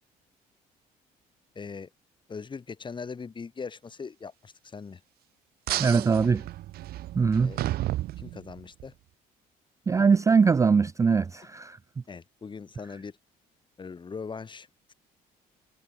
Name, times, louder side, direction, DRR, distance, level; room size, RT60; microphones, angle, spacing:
voice 1, 1.5-1.9 2.3-5.0 5.7-6.0 7.4-7.6 8.2-8.9 12.1-13.2 13.8-14.9, left 5 dB, 30° left, 2.6 m, -40 dB
sound 1, 5.7-8.9, right 15 dB, 65° right, 0.6 m, -33 dB
voice 2, 5.8-6.4 7.1-7.5 9.9-11.8, right 5 dB, 20° right, 0.3 m, -22 dB
cardioid pair, 110°, 17 cm